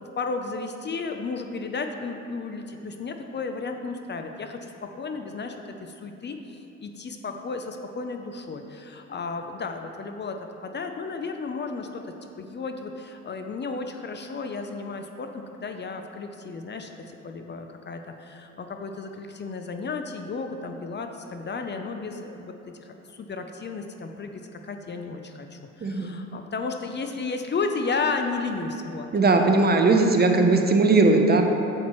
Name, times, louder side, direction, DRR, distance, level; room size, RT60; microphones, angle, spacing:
voice 1, 0.0-5.6 5.8-10.4 10.6-22.5 22.8-29.1, left 4 dB, 35° left, 5 dB, 0.5 m, -33 dB
voice 2, 25.8-26.1 29.1-31.4, right 3 dB, 35° right, 4 dB, 0.7 m, -19 dB
8.4 x 7.8 x 3.1 m, 3.0 s
cardioid pair, 90°, 30 cm